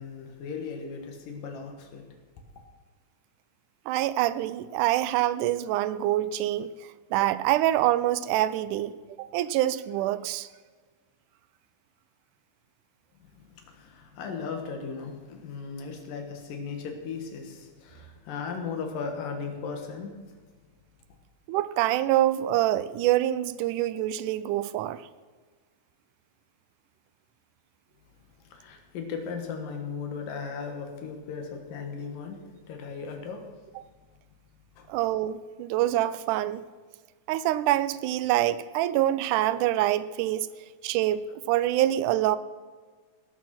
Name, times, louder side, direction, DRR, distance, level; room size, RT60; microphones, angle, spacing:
voice 1, 0.0-2.1 13.2-20.1 28.5-33.4 34.8-34.9, left 5 dB, 85° left, 4 dB, 3.2 m, -37 dB
voice 2, 3.9-6.7 7.1-8.9 9.2-10.5 21.5-25.0 33.8-33.9 34.9-36.6 37.3-40.5 40.8-42.4, right 14 dB, 80° right, 15 dB, 2.0 m, -25 dB
17.5 x 6.5 x 5.9 m, 1.4 s
omnidirectional pair, 3.8 m